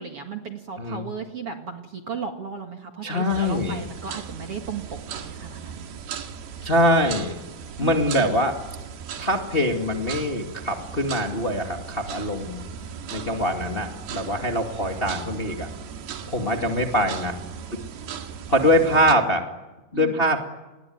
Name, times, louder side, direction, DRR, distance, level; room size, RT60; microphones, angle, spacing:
voice 1, 0.0-5.9 7.8-8.3 16.4-16.8 17.9-18.7 19.9-20.2, right 6 dB, 45° right, 4 dB, 2.3 m, -36 dB
voice 2, 3.0-3.8 6.6-7.4 7.8-8.5 9.2-12.6 13.1-15.7 16.3-17.4 18.5-19.4 19.9-20.5, equal, 20° left, 3 dB, 1.7 m, -23 dB
sound 1, 3.3-19.1, right 7 dB, 75° right, 3.8 m, -37 dB
29.0 x 21.5 x 9.5 m, 1.1 s
omnidirectional pair, 4.5 m